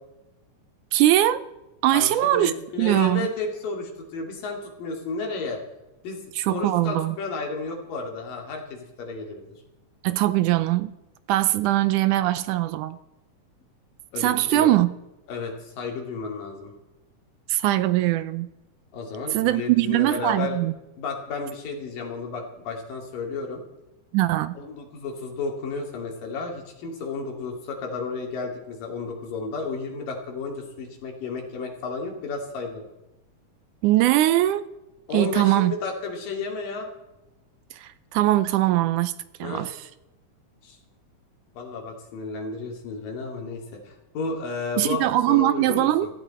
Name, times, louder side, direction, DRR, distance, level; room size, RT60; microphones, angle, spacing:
voice 1, 0.9-1.5 1.8-3.3 6.4-7.2 10.0-10.9 11.3-13.0 14.2-14.9 17.5-18.5 19.3-20.7 24.1-24.6 33.8-34.7 35.1-35.7 37.7-39.1 39.4-39.9 44.8-46.1, right 15 dB, 80° right, 14 dB, 2.0 m, -21 dB
voice 2, 1.9-5.6 6.0-9.6 14.1-14.7 15.3-16.7 18.9-20.6 21.0-23.6 24.5-32.8 35.1-36.9 39.4-39.7 40.6-40.8 41.6-46.1, left 4 dB, 90° left, 2 dB, 4.3 m, -32 dB
17.0 x 15.0 x 4.3 m, 0.99 s
omnidirectional pair, 3.8 m